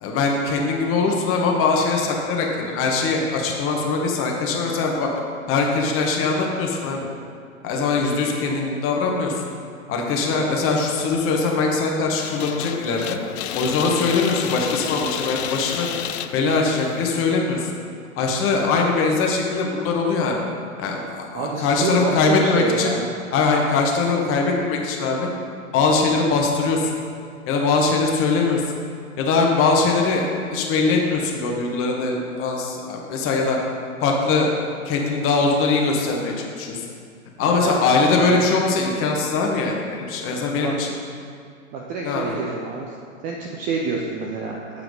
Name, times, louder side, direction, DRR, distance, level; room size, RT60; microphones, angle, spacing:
voice 1, 0.0-5.1 5.5-7.1 7.6-9.4 9.9-13.2 13.5-15.9 16.3-17.7 18.2-20.4 20.8-23.0 23.3-25.3 25.7-27.0 27.5-28.7 29.2-33.6 34.0-34.5 34.8-36.8 37.4-40.9 42.0-42.3, left 4 dB, 30° left, 0 dB, 1.3 m, -21 dB
sound 1, 12.2-17.2, left 10 dB, 50° left, 0.5 m, -31 dB
voice 2, 21.3-23.1 37.4-37.9 38.3-38.6 40.5-40.7 41.7-43.0 43.2-44.8, right 4 dB, 20° right, -1 dB, 0.4 m, -27 dB
8.0 x 4.7 x 5.2 m, 2.3 s
hypercardioid pair, 110°, 42 cm